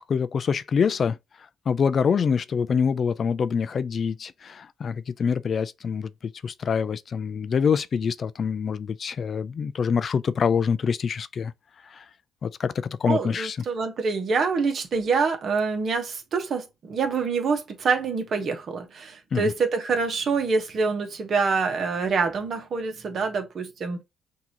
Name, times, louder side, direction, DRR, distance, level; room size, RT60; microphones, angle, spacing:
voice 1, 0.1-1.2 1.7-11.5 11.8-12.1 12.4-13.6 19.3-19.5, left 6 dB, 50° left, 0.4 m, -25 dB
voice 2, 13.1-24.0, right 4 dB, 55° right, 1.3 m, -26 dB
6.0 x 2.8 x 2.9 m
cardioid pair, 90°, 0 cm